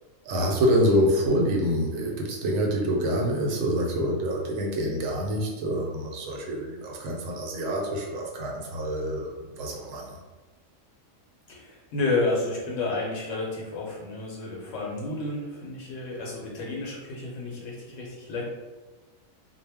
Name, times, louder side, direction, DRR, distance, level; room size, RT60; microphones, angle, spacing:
voice 1, 0.2-10.2, equal, 75° right, -1 dB, 0.9 m, -26 dB
voice 2, 11.5-18.5, left 2 dB, 75° left, -3 dB, 0.9 m, -31 dB
2.2 x 2.0 x 3.3 m, 1.2 s
omnidirectional pair, 1.4 m